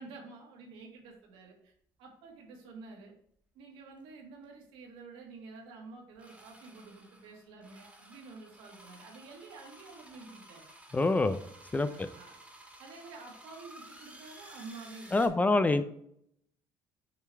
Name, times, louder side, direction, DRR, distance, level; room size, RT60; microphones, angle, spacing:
voice 1, 0.0-1.7 2.0-3.1 3.5-10.7 11.8-12.4 12.8-15.8, right 3 dB, 80° right, 0 dB, 1.9 m, -49 dB
sound 1, 4.0-4.1 4.4-4.5 6.2-15.3, right 1 dB, 15° right, 1.7 m, -54 dB
voice 2, 10.9-11.4 11.7-12.1 15.1-15.8, left 2 dB, 15° left, 12 dB, 0.4 m, -26 dB
6.7 x 3.2 x 4.6 m, 0.69 s
supercardioid pair, 95°, 9 cm